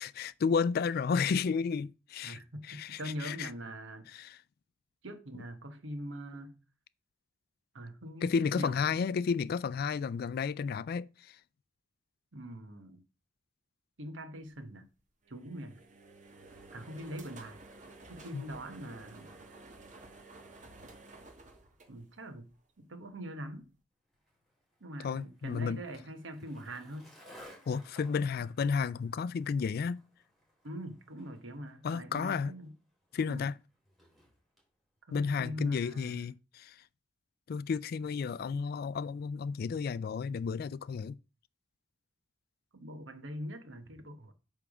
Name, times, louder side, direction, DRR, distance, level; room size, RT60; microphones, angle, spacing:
voice 1, 0.0-3.5 4.1-4.4 8.2-11.4 18.3-18.4 25.0-25.8 27.7-30.0 31.8-32.5 33.1-33.5 35.1-36.8 37.5-41.2, left 5 dB, 50° left, 0.3 m, -32 dB
voice 2, 2.2-4.1 5.0-6.6 7.7-9.0 12.3-13.0 14.0-14.9 15.3-15.8 16.7-17.6 18.1-19.3 21.9-22.5 22.8-23.7 24.8-27.1 30.6-32.7 33.3-33.5 35.1-36.2 42.7-44.3, equal, 70° right, 1.2 m, -43 dB
sound 1, 15.2-22.5, right 2 dB, 40° right, 1.4 m, -53 dB
Skateboard, 24.1-34.7, equal, ahead, 3.6 m, -59 dB
8.5 x 3.5 x 6.1 m
head